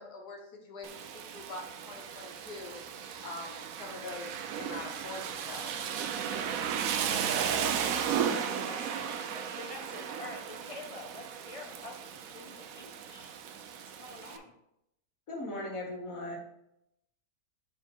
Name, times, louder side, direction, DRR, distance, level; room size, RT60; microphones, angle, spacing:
voice 1, 0.0-2.8 3.2-5.7 6.3-7.5, left 3 dB, 90° left, 1 dB, 1.8 m, -45 dB
Rain, 0.8-14.4, right 8 dB, 70° right, 1.0 m, -35 dB
voice 2, 8.2-13.3 14.0-14.5, left 2 dB, 30° left, 2 dB, 0.7 m, -47 dB
voice 3, 15.3-16.4, left 1 dB, 60° left, -1 dB, 2.0 m, -37 dB
6.9 x 4.4 x 4.5 m, 0.82 s
omnidirectional pair, 1.7 m